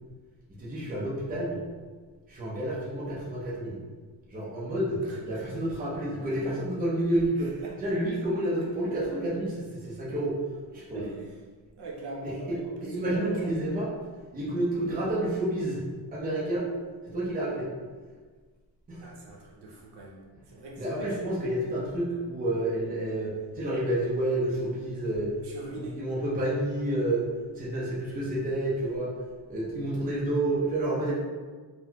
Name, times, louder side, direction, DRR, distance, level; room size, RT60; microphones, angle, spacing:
voice 1, 0.6-1.6 2.3-3.8 4.3-10.3 10.7-11.0 12.2-13.9 14.3-15.8 16.1-16.7 17.0-17.7 18.9-19.0 20.8-25.3 25.8-27.3 27.5-29.1 29.5-31.1, right 1 dB, 20° right, -6 dB, 0.6 m, -29 dB
voice 2, 5.1-5.4 6.4-6.5 7.4-7.7 10.9-11.4 11.8-13.5 19.0-21.1 25.4-26.0, right 2 dB, 65° right, -3 dB, 0.8 m, -41 dB
3.8 x 2.1 x 2.8 m, 1.4 s
cardioid pair, 170°, 43 cm